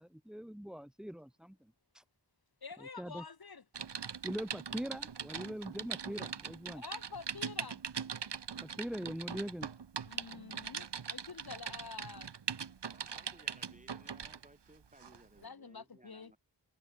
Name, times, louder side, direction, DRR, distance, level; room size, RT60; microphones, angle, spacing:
voice 1, 0.0-1.6 1.9-2.0 3.0-3.2 4.2-6.8 8.6-9.7, equal, ahead, 0.4 m, -42 dB
voice 2, 2.6-3.6 6.7-7.8 10.1-12.3 15.4-16.3, left 5 dB, 60° left, 2.2 m, -48 dB
Typing, 3.7-14.5 15.0-15.2, right 6 dB, 75° right, 1.8 m, -41 dB
voice 3, 12.9-16.4, right 1 dB, 15° right, 7.9 m, -61 dB
wide cardioid pair, 90°, 42 cm